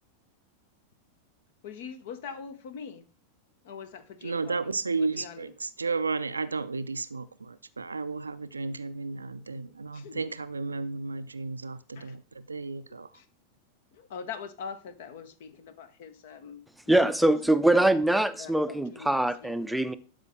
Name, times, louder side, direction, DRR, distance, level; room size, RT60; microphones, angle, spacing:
voice 1, 1.6-3.0 3.6-4.7 5.0-5.5 9.5-9.6 9.9-10.2 11.9-12.1 12.9-13.2 13.9-18.0 18.4-19.5, left 6 dB, 55° left, 0.9 m, -43 dB
voice 2, 4.2-13.1, right 4 dB, 75° right, 0.4 m, -33 dB
voice 3, 16.9-20.0, right 1 dB, ahead, 0.5 m, -23 dB
12.0 x 5.2 x 3.6 m
figure-of-eight pair, 90°, 0 cm